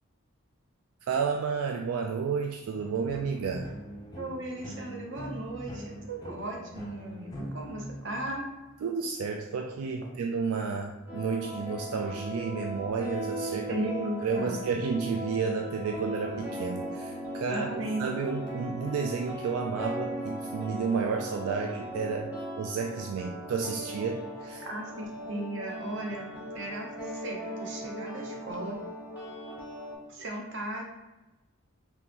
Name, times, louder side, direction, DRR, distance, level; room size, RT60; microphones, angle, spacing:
voice 1, 1.1-3.7 8.8-13.8 14.2-17.7 18.0-24.6, right 5 dB, 85° right, 3 dB, 0.3 m, -31 dB
sound 1, 2.8-8.7, equal, 20° left, 0.4 m, -42 dB
voice 2, 4.1-8.5 13.7-14.6 17.5-18.1 24.7-26.3 26.5-28.8 30.1-30.8, right 1 dB, 55° right, 0 dB, 0.7 m, -36 dB
sound 2, 11.1-30.0, equal, 10° right, 0.8 m, -38 dB
3.7 x 2.9 x 2.9 m, 1.1 s
head